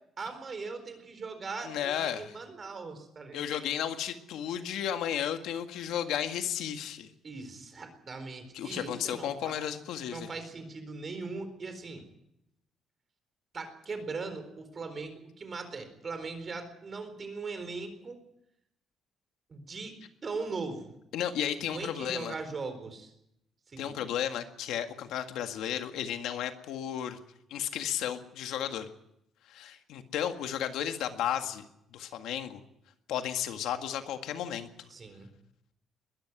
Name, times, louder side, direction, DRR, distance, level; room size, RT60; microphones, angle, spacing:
voice 1, 0.2-3.5 7.2-9.5 10.1-12.0 13.5-18.2 19.5-19.9 20.2-20.9 21.7-23.1 23.7-24.0 34.9-35.3, right 4 dB, 30° right, 8 dB, 4.2 m, -39 dB
voice 2, 1.6-2.3 3.3-7.1 8.5-10.3 21.1-22.3 23.8-27.2 27.5-28.9 29.5-31.7 31.9-32.6 33.1-34.7, left 10 dB, 90° left, 7 dB, 1.8 m, -33 dB
21.5 x 14.0 x 9.6 m, 0.80 s
cardioid pair, 160°, 0 cm